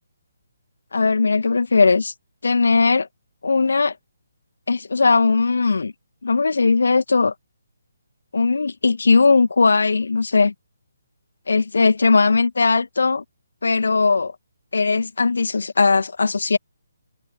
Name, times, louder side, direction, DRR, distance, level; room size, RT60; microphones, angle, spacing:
voice 1, 0.9-2.1 2.4-3.1 3.4-3.9 4.7-5.9 6.2-7.3 8.3-10.5 11.5-13.2 13.6-14.3 14.7-16.6, left 4 dB, 65° left, 2.2 m, -18 dB
figure-of-eight pair, 140°, 0 cm